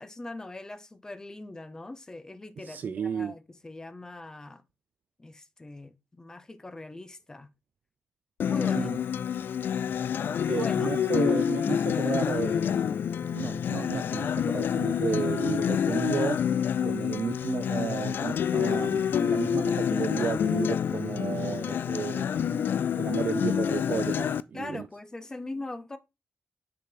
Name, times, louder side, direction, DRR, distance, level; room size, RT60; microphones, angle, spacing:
voice 1, 0.0-4.6 5.2-7.5 8.4-8.9 10.5-10.9 24.5-26.0, left 2 dB, 15° left, 0.5 m, -41 dB
voice 2, 2.6-3.3 8.7-9.0 10.5-12.8 13.3-16.6 16.8-22.7 22.9-24.9, right 7 dB, 55° right, 0.3 m, -33 dB
Acoustic guitar, 8.4-24.4, left 8 dB, 75° left, 0.3 m, -27 dB
6.7 x 3.2 x 5.2 m
wide cardioid pair, 155°, 4 cm